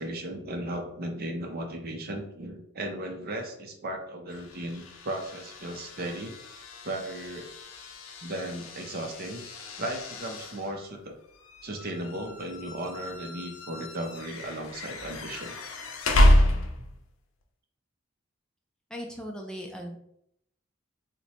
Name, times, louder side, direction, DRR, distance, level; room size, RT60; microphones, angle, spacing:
voice 1, 0.0-6.3 6.8-7.5 8.2-9.4 9.8-11.1 11.6-15.5, right 1 dB, 50° right, 3 dB, 0.6 m, -36 dB
sound 1, 4.3-17.1, left 1 dB, 90° left, 0.5 m, -29 dB
voice 2, 18.9-20.0, equal, 5° left, 0 dB, 0.4 m, -38 dB
2.9 x 2.1 x 4.1 m, 0.74 s
head